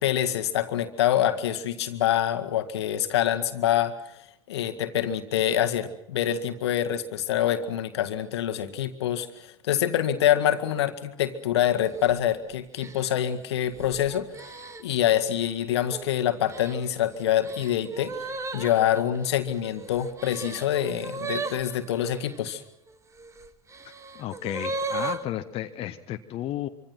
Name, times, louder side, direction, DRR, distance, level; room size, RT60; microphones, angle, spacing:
voice 1, 0.0-4.0 4.5-22.6, left 11 dB, 65° left, 9 dB, 1.9 m, -26 dB
sound 1, 11.8-12.2 12.8-15.1 15.7-16.1 16.5-22.4 23.2-25.2, right 3 dB, 20° right, 1.9 m, -36 dB
voice 2, 24.1-26.7, left 13 dB, 40° left, 7 dB, 1.3 m, -33 dB
26.0 x 25.5 x 6.0 m, 0.79 s
figure-of-eight pair, 75°, 15 cm